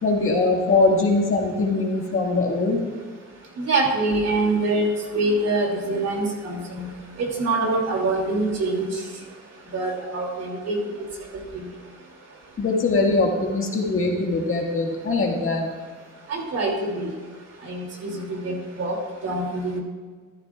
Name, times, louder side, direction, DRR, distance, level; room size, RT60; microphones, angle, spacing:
voice 1, 0.0-2.8 12.6-15.7, left 3 dB, 45° left, 0 dB, 1.9 m, -22 dB
voice 2, 3.6-4.9 5.1-6.8 7.2-8.9 9.7-10.8 11.5-11.6 16.3-17.1 17.6-19.0 19.2-19.8, right 2 dB, 55° right, 0 dB, 2.7 m, -25 dB
13.5 x 12.0 x 2.4 m, 1.5 s
cardioid pair, 90°, 30 cm